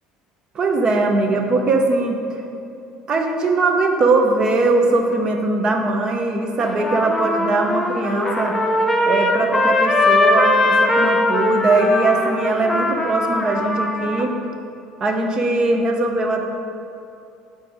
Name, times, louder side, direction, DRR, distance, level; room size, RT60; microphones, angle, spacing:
voice 1, 0.5-2.4 3.1-8.6 9.1-14.3 15.0-16.4, right 2 dB, 35° right, 3 dB, 0.8 m, -20 dB
Trumpet, 6.6-14.2, left 1 dB, 10° left, 0.6 m, -20 dB
7.8 x 4.2 x 4.8 m, 2.6 s
cardioid pair, 130°, 2 cm